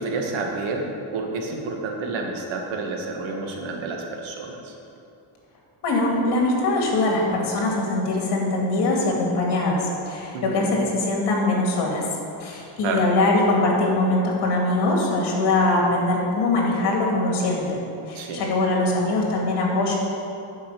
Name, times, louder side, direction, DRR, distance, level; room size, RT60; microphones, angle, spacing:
voice 1, 0.0-4.7 10.3-10.8 12.8-13.0 18.1-18.4, right 3 dB, 80° right, 1 dB, 1.7 m, -29 dB
voice 2, 5.8-12.0 12.4-17.8 18.1-19.9, left 2 dB, 60° left, -1 dB, 2.5 m, -22 dB
9.5 x 5.5 x 7.7 m, 2.7 s
cardioid pair, 165°, 46 cm